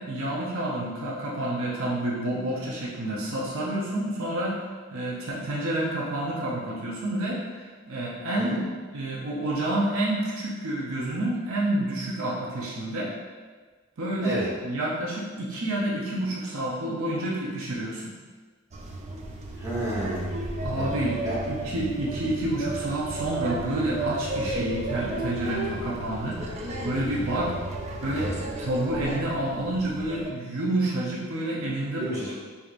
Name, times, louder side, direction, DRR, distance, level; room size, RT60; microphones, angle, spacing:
voice 1, 0.0-4.6 4.9-8.6 8.9-13.1 14.0-18.1 20.6-27.5 28.0-28.3 28.6-32.1, right 1 dB, 75° right, -5 dB, 0.7 m, -29 dB
sound 1, 18.7-30.3, right 2 dB, 30° right, 0.3 m, -33 dB
voice 2, 19.6-20.3 20.7-20.9 21.2-21.4 24.5-24.7 27.1-27.4 32.0-32.3, right 1 dB, 15° right, -10 dB, 1.1 m, -31 dB
4.6 x 2.7 x 2.5 m, 1.4 s
head